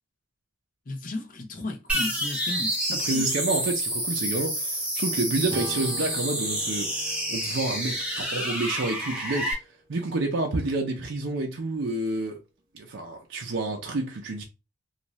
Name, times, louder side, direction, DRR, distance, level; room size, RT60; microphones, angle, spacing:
voice 1, 0.9-3.3, left 1 dB, 45° left, 0.6 m, -35 dB
sound 1, 1.9-9.5, right 1 dB, 5° right, 0.8 m, -29 dB
voice 2, 3.0-9.6 9.9-12.4 12.7-14.4, right 2 dB, 70° right, 0.6 m, -29 dB
Acoustic guitar / Strum, 5.5-9.9, right 1 dB, 25° right, 0.4 m, -44 dB
2.6 x 2.4 x 3.1 m
head